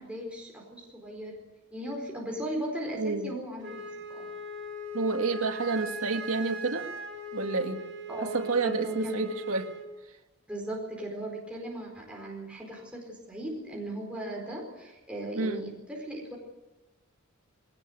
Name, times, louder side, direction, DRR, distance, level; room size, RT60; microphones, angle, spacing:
voice 1, 0.0-1.4 1.7-4.3 8.1-9.2 10.5-16.4, right 1 dB, 5° right, -1 dB, 4.4 m, -37 dB
voice 2, 3.0-3.3 4.9-6.9 7.3-7.8 8.3-9.7 15.3-15.6, right 3 dB, 85° right, 6 dB, 1.7 m, -29 dB
Wind instrument woodwind instrument, 3.6-9.9, right 1 dB, 60° right, 4.2 m, -40 dB
20.5 x 18.5 x 8.0 m, 1.1 s
head